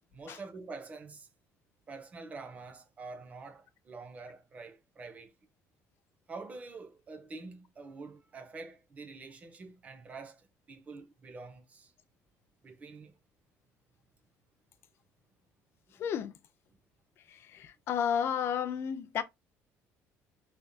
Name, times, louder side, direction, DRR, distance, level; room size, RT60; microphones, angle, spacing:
voice 1, 0.1-1.3 1.9-5.3 6.3-11.9 12.6-13.2, right 3 dB, 25° right, 0.8 m, -46 dB
voice 2, 16.0-16.3 17.5-19.2, left 8 dB, 50° left, 0.5 m, -32 dB
3.6 x 3.3 x 2.7 m
cardioid pair, 155°, 6 cm